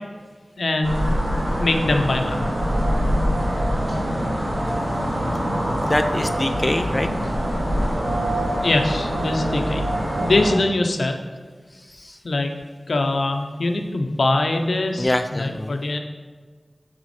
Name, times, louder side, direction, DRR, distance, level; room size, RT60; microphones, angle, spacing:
voice 1, 0.6-1.1 1.6-2.4 8.6-9.8 10.2-11.1 12.2-12.5 12.9-16.0, left 2 dB, 75° left, 4 dB, 0.7 m, -22 dB
sound 1, 0.8-10.5, equal, 75° right, 2.2 m, -24 dB
voice 2, 5.8-7.1 11.9-12.2 15.0-15.8, left 1 dB, 20° left, 7 dB, 0.3 m, -24 dB
8.1 x 6.2 x 3.2 m, 1.5 s
wide cardioid pair, 75°, 0 cm